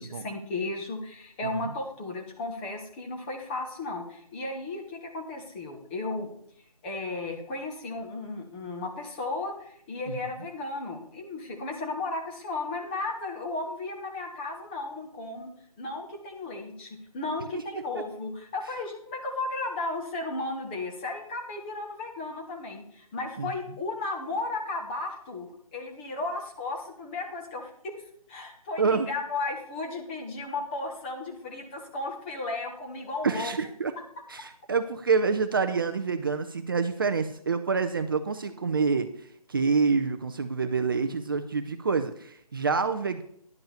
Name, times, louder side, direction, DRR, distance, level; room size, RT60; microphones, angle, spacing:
voice 1, 0.0-6.3 6.8-15.5 15.8-28.0 28.3-33.5, left 2 dB, 20° left, 2 dB, 1.4 m, -34 dB
voice 2, 28.8-29.1 33.2-33.9 34.3-39.1 39.5-43.2, right 5 dB, 35° right, 8 dB, 0.5 m, -27 dB
10.5 x 5.4 x 6.9 m, 0.65 s
figure-of-eight pair, 155°, 19 cm